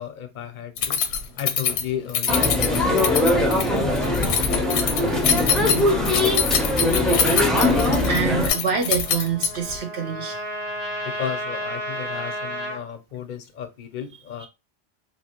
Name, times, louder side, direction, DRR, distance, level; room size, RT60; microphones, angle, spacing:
voice 1, 0.0-5.9 11.0-14.5, left 9 dB, 55° left, 0.6 m, -35 dB
Keys jangling, 0.8-9.8, left 7 dB, 85° left, 0.8 m, -24 dB
sound 1, 2.3-8.5, left 1 dB, ahead, 0.3 m, -21 dB
voice 2, 8.1-10.4 11.1-11.2 14.4-14.5, right 6 dB, 75° right, 1.1 m, -26 dB
Trumpet, 8.4-12.8, equal, 35° right, 1.0 m, -32 dB
2.9 x 2.8 x 2.9 m
omnidirectional pair, 1.1 m